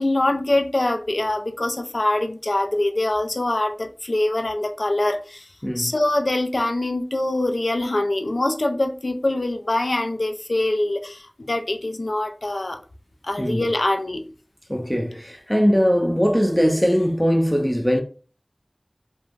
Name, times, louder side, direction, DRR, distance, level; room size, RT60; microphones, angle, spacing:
voice 1, 0.0-5.5 5.8-12.8 13.2-14.3, left 1 dB, 85° left, 0.3 m, -24 dB
voice 2, 5.6-5.9 13.4-13.7 14.7-18.0, equal, 10° left, 0.5 m, -20 dB
3.1 x 2.1 x 2.4 m
wide cardioid pair, 40°, 0 cm